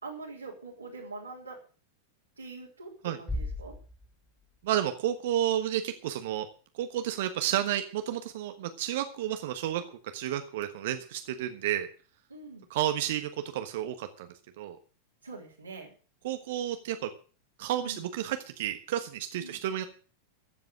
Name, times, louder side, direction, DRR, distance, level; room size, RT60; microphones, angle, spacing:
voice 1, 0.0-1.6 2.4-3.7 12.3-12.6 15.2-15.9 17.8-18.0 19.4-19.6, right 3 dB, 80° right, -5 dB, 3.5 m, -43 dB
Bass drum, 3.3-5.0, left 1 dB, 10° left, 3.5 m, -38 dB
voice 2, 4.6-6.5 6.8-9.8 10.1-11.9 12.7-14.3 14.6-14.8 16.2-17.1 17.6-19.9, right 11 dB, 55° right, 8 dB, 1.3 m, -31 dB
15.0 x 7.6 x 7.7 m, 0.39 s
figure-of-eight pair, 90°, 0 cm